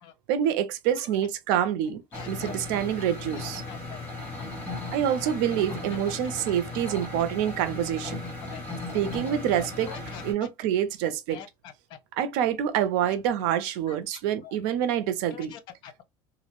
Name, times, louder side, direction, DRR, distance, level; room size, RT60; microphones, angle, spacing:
voice 1, 0.3-3.6 4.9-8.2 8.9-9.9 10.2-11.4 12.1-15.5, right 10 dB, 85° right, 0.5 m, -27 dB
voice 2, 2.1-2.5 3.7-4.0 6.8-7.2 8.5-8.6 9.8-10.2 11.3-11.5 13.9-14.0 14.4-14.5 15.3-16.0, left 8 dB, 50° left, 0.5 m, -44 dB
sound 1, 2.1-10.3, left 2 dB, 20° left, 0.9 m, -37 dB
2.4 x 2.1 x 2.9 m
cardioid pair, 165°, 10 cm